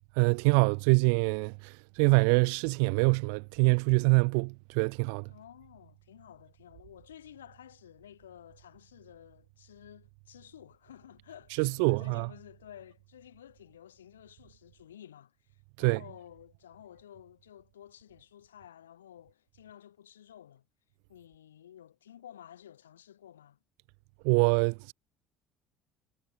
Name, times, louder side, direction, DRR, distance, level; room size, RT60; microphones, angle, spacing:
voice 1, 0.2-5.3 11.6-12.3 15.8-16.0 24.2-24.9, right 40 dB or more, 70° right, 0.3 m, -25 dB
voice 2, 5.3-20.7 21.1-23.6, left 10 dB, 85° left, 6.1 m, -52 dB
hypercardioid pair, 60°, 0 cm